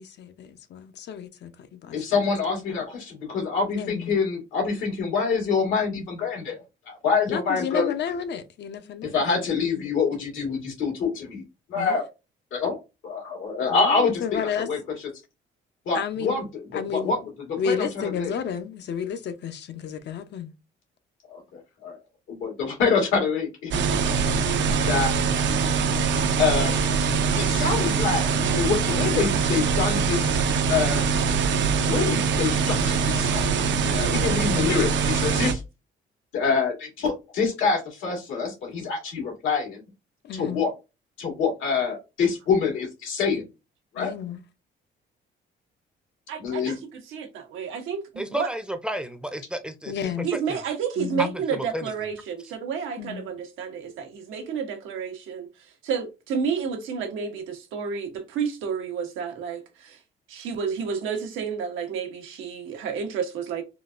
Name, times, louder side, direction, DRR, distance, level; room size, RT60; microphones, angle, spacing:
voice 1, 0.0-2.6 3.7-4.2 7.3-9.9 11.7-12.0 13.7-14.7 15.9-16.4 16.7-17.2 17.6-20.5 34.4-34.7 40.2-40.6 44.0-44.4 49.9-50.3 51.0-51.3 53.0-53.3, left 7 dB, 60° left, 0.6 m, -32 dB
voice 2, 1.9-7.9 9.1-11.4 11.7-12.1 12.5-12.8 13.0-14.4 14.7-14.8 15.9-16.4 16.7-17.2 17.6-17.9 18.2-18.3 21.3-22.0 22.3-25.1 26.4-26.8 27.4-28.3 28.5-31.2 31.8-35.6 36.3-39.8 40.3-40.7 41.2-43.5 43.9-44.1 46.4-46.8, left 5 dB, 90° left, 1.8 m, -26 dB
sound 1, 23.7-35.5, right 5 dB, 65° right, 0.6 m, -23 dB
voice 3, 46.3-46.8 47.1-48.5 50.2-55.5 55.8-60.0 60.3-63.6, right 6 dB, 90° right, 0.9 m, -30 dB
voice 4, 48.2-49.9 50.3-50.6 51.2-51.9, right 1 dB, 5° right, 0.5 m, -32 dB
3.8 x 2.3 x 2.4 m
cardioid pair, 90°, 20 cm